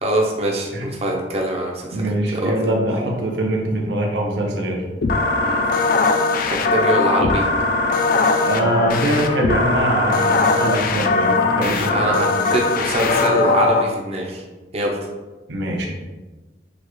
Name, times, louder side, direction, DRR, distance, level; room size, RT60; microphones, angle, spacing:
voice 1, 0.0-2.7 5.4-5.6 6.5-7.5 11.6-14.4 14.7-15.0, right 1 dB, 35° right, -1 dB, 0.7 m, -23 dB
voice 2, 1.9-4.8 8.4-12.1 15.5-15.9, right 1 dB, 75° right, 0 dB, 0.8 m, -22 dB
sound 1, 5.0-13.8, left 3 dB, 50° left, 0.4 m, -19 dB
6.9 x 2.4 x 3.1 m, 1.2 s
head